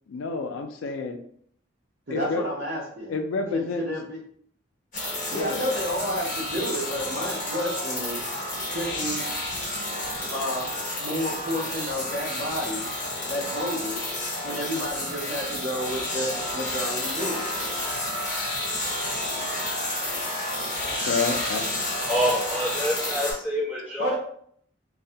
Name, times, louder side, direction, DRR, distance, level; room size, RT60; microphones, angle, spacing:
voice 1, 0.1-1.2 2.1-2.4 3.1-3.9 5.3-5.6 20.8-21.6, left 4 dB, 85° left, 5 dB, 0.4 m, -29 dB
voice 2, 2.1-3.2 3.5-4.2 5.3-8.4 8.7-9.2 10.3-10.7 11.0-12.9 13.3-14.0 14.4-17.5 24.0-24.1, equal, 55° right, -9 dB, 0.6 m, -30 dB
sound 1, 4.9-23.3, left 1 dB, 40° left, 1.0 m, -30 dB
voice 3, 22.1-24.1, equal, 10° right, -8 dB, 0.8 m, -26 dB
2.2 x 2.1 x 2.7 m, 0.63 s
head